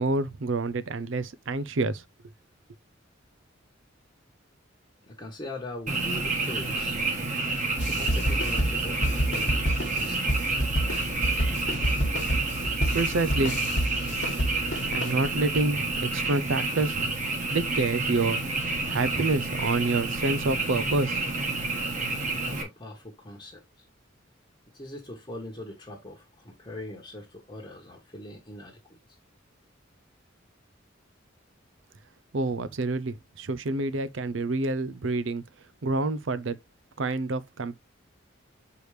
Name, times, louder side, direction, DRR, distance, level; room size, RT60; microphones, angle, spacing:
voice 1, 0.0-2.0 12.9-13.7 14.9-17.1 17.5-18.4 18.9-21.2 32.3-35.4 35.8-36.6 37.0-37.8, right 3 dB, 70° right, 0.6 m, -27 dB
voice 2, 5.0-7.0 7.8-10.6 22.4-23.8 24.7-29.0, left 1 dB, 25° left, 1.2 m, -41 dB
Frog, 5.9-22.6, right 3 dB, 40° right, 1.6 m, -29 dB
sound 1, 7.8-15.1, equal, 60° left, 1.4 m, -29 dB
6.6 x 4.9 x 3.2 m
head